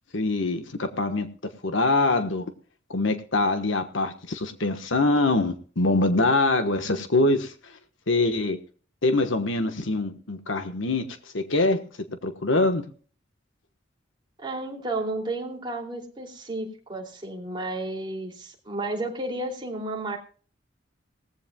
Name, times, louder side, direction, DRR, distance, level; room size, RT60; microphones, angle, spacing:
voice 1, 0.1-1.3 1.6-2.5 2.9-7.5 8.1-8.6 9.0-11.1 11.3-11.8 12.2-12.8, left 2 dB, 85° left, 8 dB, 1.3 m, -24 dB
voice 2, 14.4-20.2, right 2 dB, 25° right, 0 dB, 2.9 m, -32 dB
19.0 x 15.0 x 2.3 m, 0.41 s
head